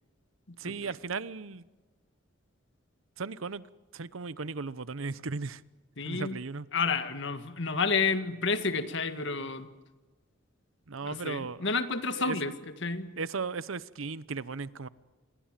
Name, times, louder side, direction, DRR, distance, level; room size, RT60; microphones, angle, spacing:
voice 1, 0.6-1.7 3.2-3.7 3.9-5.6 6.0-6.7 10.9-11.7 12.1-12.4 13.2-14.9, right 4 dB, 85° right, 0.8 m, -36 dB
voice 2, 6.0-6.4 6.7-9.7 11.0-12.5 12.8-13.1, left 4 dB, 65° left, 1.8 m, -30 dB
27.0 x 22.0 x 7.5 m
head